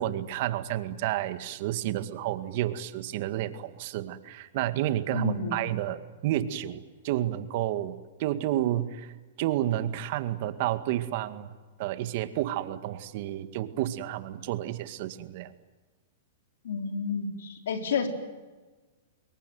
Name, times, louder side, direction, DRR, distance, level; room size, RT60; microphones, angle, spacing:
voice 1, 0.0-11.5 11.8-15.5, right 13 dB, 55° right, 11 dB, 2.0 m, -30 dB
voice 2, 5.1-5.6 16.6-18.1, left 5 dB, 75° left, 5 dB, 4.5 m, -30 dB
26.0 x 22.5 x 9.4 m, 1.3 s
hypercardioid pair, 125°, 0 cm